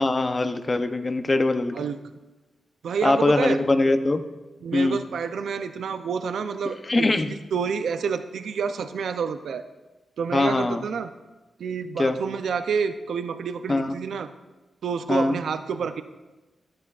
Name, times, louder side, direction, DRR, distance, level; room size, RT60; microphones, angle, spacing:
voice 1, 0.0-1.7 3.0-4.2 4.7-5.0 6.9-7.3 10.3-10.8 12.0-12.2 13.7-13.9 15.1-15.4, left 2 dB, 30° left, 9 dB, 0.7 m, -22 dB
voice 2, 2.8-3.6 4.6-7.1 7.5-9.6 10.2-11.1 11.6-14.3 14.8-16.0, right 6 dB, 85° right, 9 dB, 0.4 m, -28 dB
14.0 x 10.5 x 2.4 m, 1.1 s
cardioid pair, 85°, 0 cm